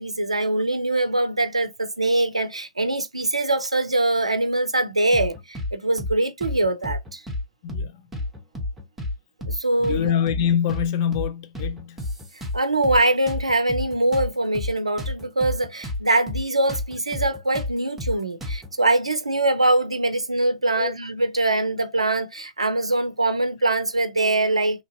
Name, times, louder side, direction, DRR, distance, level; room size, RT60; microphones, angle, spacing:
voice 1, 0.0-7.2 9.5-10.1 12.5-24.8, right 2 dB, 80° right, 0.5 m, -23 dB
sound 1, 5.1-5.7 6.0-6.1 6.4-7.4 7.7-7.9 8.1-9.1 9.4-9.6 9.8-10.9 11.1-11.3 11.6-13.0 13.3-16.0 16.3-16.4 16.7-18.7, left 2 dB, 10° right, 0.9 m, -30 dB
voice 2, 7.6-8.0 9.8-12.0 20.8-20.9, left 8 dB, 40° left, 0.4 m, -25 dB
3.2 x 2.5 x 2.5 m
figure-of-eight pair, 110°, 3 cm